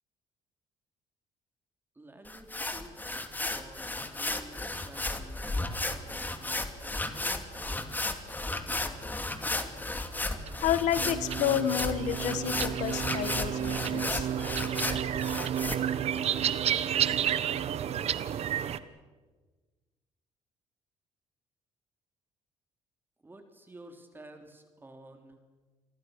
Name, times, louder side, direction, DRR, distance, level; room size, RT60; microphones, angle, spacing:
voice 1, 2.0-3.1 3.5-8.1 8.8-9.1 23.2-25.4, right 1 dB, 15° right, 5 dB, 3.4 m, -52 dB
sound 1, 2.3-15.8, left 2 dB, 15° left, 2.5 m, -34 dB
sound 2, 10.2-18.8, right 10 dB, 60° right, 1.2 m, -31 dB
voice 2, 10.6-14.3, left 11 dB, 85° left, 13 dB, 1.7 m, -30 dB
29.5 x 24.5 x 6.6 m, 1.3 s
cardioid pair, 110°, 12 cm